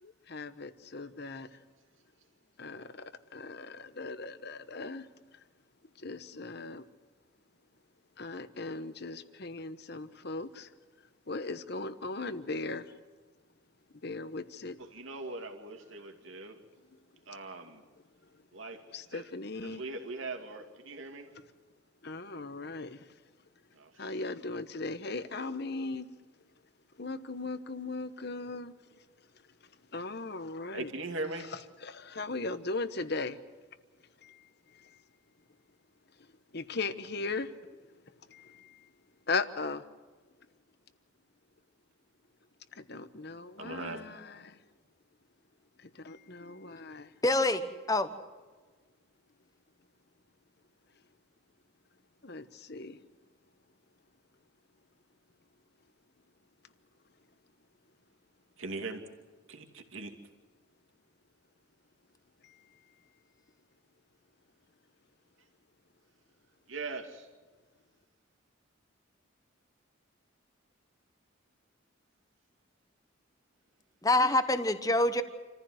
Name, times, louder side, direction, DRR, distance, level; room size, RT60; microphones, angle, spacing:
voice 1, 0.0-1.5 2.6-5.1 6.0-6.8 8.2-10.7 11.3-12.9 14.0-14.8 18.9-19.8 22.0-23.0 24.0-26.1 27.0-28.7 29.9-30.9 31.8-33.4 34.2-34.4 34.7-34.9 36.5-37.5 38.3-38.8 39.3-39.8 42.7-44.6 45.8-47.1 52.2-53.0 62.4-62.5, left 3 dB, 50° left, 1.1 m, -38 dB
voice 2, 14.8-16.6 17.3-17.8 18.5-19.3 19.6-21.3 23.7-24.2 30.7-31.5 43.6-44.0 58.6-59.0 59.5-60.2 66.7-67.3, right 3 dB, 70° right, 2.7 m, -40 dB
voice 3, 47.2-48.1 74.0-75.2, left 2 dB, 15° left, 1.1 m, -26 dB
28.0 x 15.0 x 7.9 m
head